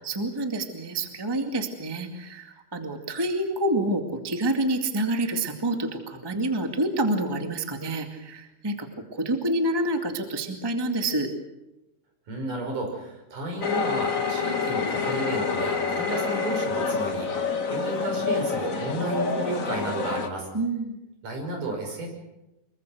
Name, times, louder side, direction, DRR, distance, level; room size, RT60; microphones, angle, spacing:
voice 1, 0.0-11.3 20.5-21.0, right 1 dB, 10° right, 4 dB, 1.7 m, -28 dB
voice 2, 12.3-20.5 21.2-22.1, right 2 dB, 75° right, 2 dB, 7.4 m, -32 dB
sound 1, 13.6-20.3, left 5 dB, 40° left, 1.2 m, -27 dB
25.0 x 23.0 x 6.5 m, 0.95 s
omnidirectional pair, 3.7 m